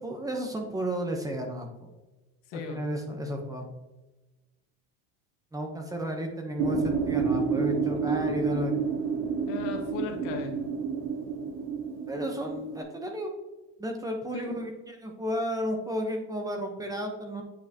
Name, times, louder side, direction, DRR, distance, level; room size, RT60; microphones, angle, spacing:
voice 1, 0.0-1.7 2.5-3.7 5.5-8.9 12.1-13.3 13.8-17.4, equal, 10° right, 3 dB, 0.9 m, -33 dB
voice 2, 2.5-2.8 8.1-8.4 9.4-10.5 14.3-14.6, left 6 dB, 80° left, 3 dB, 1.5 m, -37 dB
sound 1, 6.6-12.8, right 5 dB, 65° right, 1.1 m, -29 dB
8.4 x 5.6 x 2.9 m, 1.1 s
cardioid pair, 140°, 35 cm